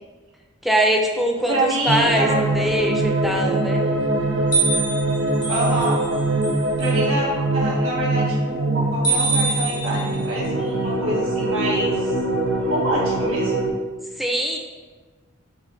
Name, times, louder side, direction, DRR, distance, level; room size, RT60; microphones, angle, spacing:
voice 1, 0.6-3.8 14.2-14.6, equal, ahead, 1 dB, 0.3 m, -22 dB
voice 2, 1.4-2.4 5.5-6.0 6.8-12.1 12.6-13.6, right 1 dB, 85° right, -6 dB, 1.4 m, -26 dB
sound 1, 1.9-13.7, right 2 dB, 70° right, 0.6 m, -23 dB
sound 2, 4.5-6.1 6.4-6.9 9.0-10.2, right 3 dB, 60° left, 1.2 m, -24 dB
6.3 x 2.5 x 2.5 m, 1.3 s
head